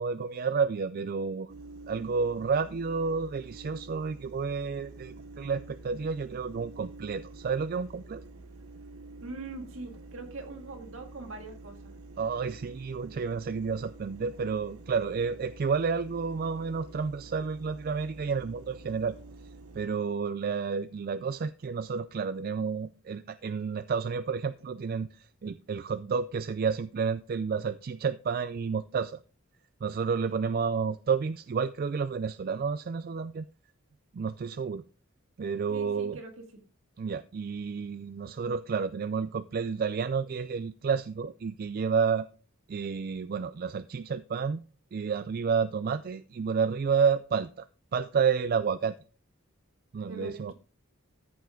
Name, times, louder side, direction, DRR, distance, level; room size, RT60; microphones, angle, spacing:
voice 1, 0.0-1.5 1.9-8.2 12.2-19.2 19.7-29.2 29.8-33.5 34.1-34.8 35.4-36.2 37.0-42.3 42.7-44.6 44.9-47.7 47.9-49.0 49.9-50.5, right 5 dB, 45° right, 0.3 m, -30 dB
sound 1, 1.5-19.9, right 2 dB, 90° right, 1.0 m, -48 dB
voice 2, 9.2-11.9 35.7-36.6 50.1-50.5, right 3 dB, 70° right, 2.1 m, -43 dB
13.5 x 5.6 x 3.8 m
head